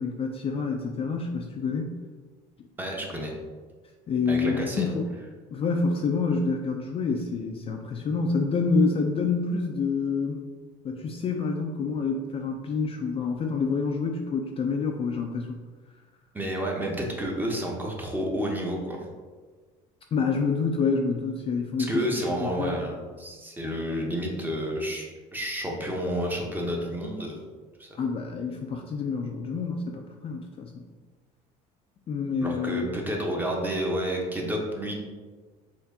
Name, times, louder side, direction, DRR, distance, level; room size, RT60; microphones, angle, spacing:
voice 1, 0.0-1.9 4.1-5.0 5.5-10.4 10.8-15.6 20.1-22.8 27.9-30.9 32.1-32.9, left 4 dB, 35° left, 2 dB, 0.4 m, -27 dB
voice 2, 2.8-3.3 4.3-4.9 16.3-19.0 21.9-27.5 27.8-27.9 32.4-34.9, equal, 10° right, -1 dB, 0.8 m, -30 dB
4.4 x 2.6 x 2.7 m, 1.4 s
supercardioid pair, 95°, 17 cm